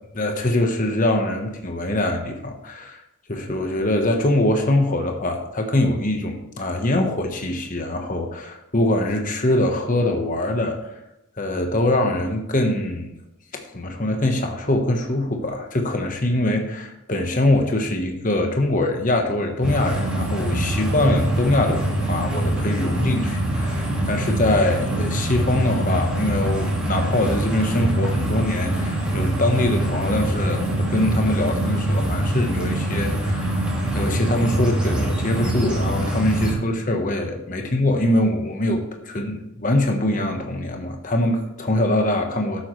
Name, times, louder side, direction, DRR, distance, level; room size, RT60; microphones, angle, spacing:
voice 1, 0.1-3.0 3.3-10.9 11.4-13.1 13.5-33.6 33.9-42.6, left 1 dB, 35° left, 3 dB, 1.2 m, -23 dB
sound 1, 19.6-36.5, right 1 dB, 5° right, 2.7 m, -24 dB
11.5 x 8.5 x 3.3 m, 0.90 s
head